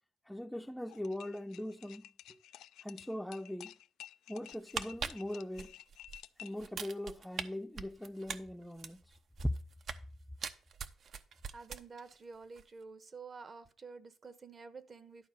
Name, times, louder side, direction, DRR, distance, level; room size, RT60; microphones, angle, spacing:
voice 1, 0.3-2.1 2.8-3.8 4.3-5.8 6.4-9.2 9.4-9.5, left 1 dB, 5° left, 0.6 m, -40 dB
sound 1, 0.9-6.7, left 13 dB, 85° left, 0.4 m, -53 dB
sound 2, 4.5-6.2 6.6-7.4 7.8-10.1 10.4-12.2 12.4-12.6, right 6 dB, 60° right, 0.8 m, -42 dB
voice 2, 11.5-15.3, right 4 dB, 40° right, 1.0 m, -50 dB
11.5 x 4.4 x 6.4 m
cardioid pair, 90°, 0 cm